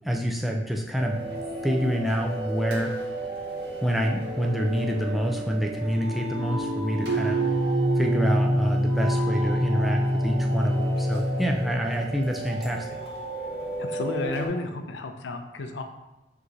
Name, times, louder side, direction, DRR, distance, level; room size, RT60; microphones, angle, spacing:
voice 1, 0.0-1.2 1.6-2.9 3.8-7.4 8.0-13.0, equal, ahead, 0 dB, 0.4 m, -27 dB
sound 1, 1.0-14.5, right 1 dB, 60° right, 1.1 m, -34 dB
sound 2, 7.1-12.3, equal, 75° right, 0.5 m, -25 dB
voice 2, 13.8-15.8, left 2 dB, 80° left, 6 dB, 0.5 m, -32 dB
4.8 x 2.8 x 3.8 m, 0.96 s
head